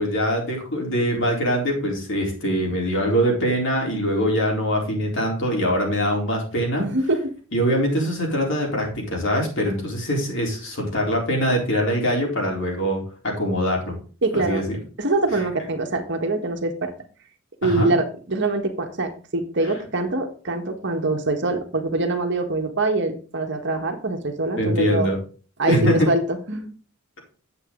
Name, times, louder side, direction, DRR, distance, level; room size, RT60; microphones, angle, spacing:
voice 1, 0.0-6.9 7.5-14.0 14.3-14.8 17.6-17.9 24.6-25.2 25.7-26.1, equal, 55° left, 0 dB, 4.0 m, -23 dB
voice 2, 6.8-7.2 14.2-14.6 15.0-16.9 17.6-25.1 25.6-26.7, right 2 dB, 55° right, 5 dB, 1.6 m, -24 dB
9.2 x 8.2 x 3.9 m, 0.38 s
head